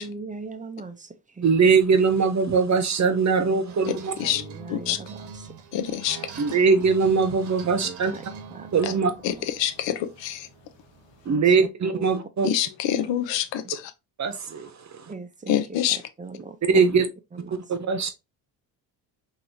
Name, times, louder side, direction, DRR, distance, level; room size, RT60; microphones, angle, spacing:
voice 1, 0.0-1.5 3.4-5.5 7.5-8.2 8.5-9.0 9.4-9.5 9.9-10.1 11.2-12.0 12.9-13.1 13.6-13.7 15.1-15.6 15.9-16.9 17.3-17.6, right 4 dB, 15° right, 0.6 m, -41 dB
voice 2, 1.4-4.1 6.4-8.1 8.7-9.1 11.2-12.5 14.2-15.1 16.6-17.1 17.7-18.1, right 5 dB, 35° right, 0.9 m, -21 dB
sound 1, 3.7-11.3, right 5 dB, 60° right, 1.1 m, -43 dB
voice 3, 3.9-4.4 4.7-5.0 5.7-6.2 9.2-10.5 12.4-13.9 15.5-16.0, left 11 dB, 65° left, 0.7 m, -26 dB
4.5 x 2.9 x 2.7 m
supercardioid pair, 70°, 48 cm